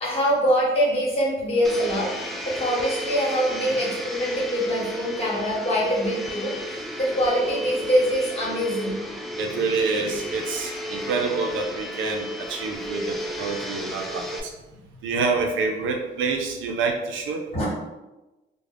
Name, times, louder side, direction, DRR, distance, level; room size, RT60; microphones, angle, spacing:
voice 1, 0.0-2.1 2.5-9.0 17.5-17.7, equal, 30° left, -5 dB, 1.2 m, -24 dB
Domestic sounds home sounds, 1.6-14.4, equal, ahead, 0.3 m, -33 dB
voice 2, 9.4-14.5 15.0-17.4, right 4 dB, 80° right, 2 dB, 0.5 m, -27 dB
2.4 x 2.1 x 3.3 m, 1.0 s
cardioid pair, 90°, 20 cm